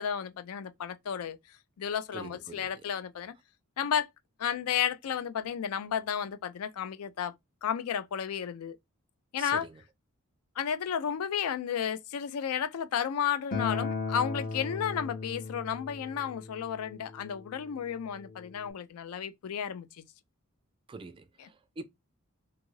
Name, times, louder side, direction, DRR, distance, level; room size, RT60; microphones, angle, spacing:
voice 1, 0.0-1.4 1.8-3.3 3.8-4.1 4.4-7.3 7.6-8.8 9.3-9.7 10.6-19.9 21.4-21.5, left 8 dB, 80° left, 0.4 m, -32 dB
voice 2, 2.1-2.7 9.4-9.8 20.9-21.8, right 3 dB, 25° right, 0.3 m, -44 dB
Acoustic guitar, 13.5-18.7, left 4 dB, 40° left, 0.7 m, -37 dB
2.6 x 2.4 x 3.1 m
head